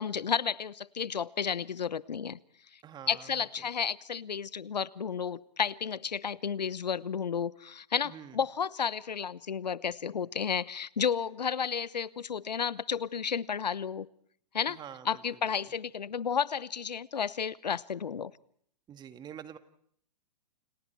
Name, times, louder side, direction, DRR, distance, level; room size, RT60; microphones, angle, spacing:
voice 1, 0.0-2.4 3.1-14.1 14.5-14.8 15.0-18.3, left 7 dB, 90° left, 20 dB, 0.9 m, -32 dB
voice 2, 2.8-3.7 8.0-8.4 14.7-15.5 18.9-19.6, right 9 dB, 20° right, 11 dB, 1.8 m, -47 dB
29.5 x 29.0 x 4.6 m, 0.63 s
hypercardioid pair, 125°, 21 cm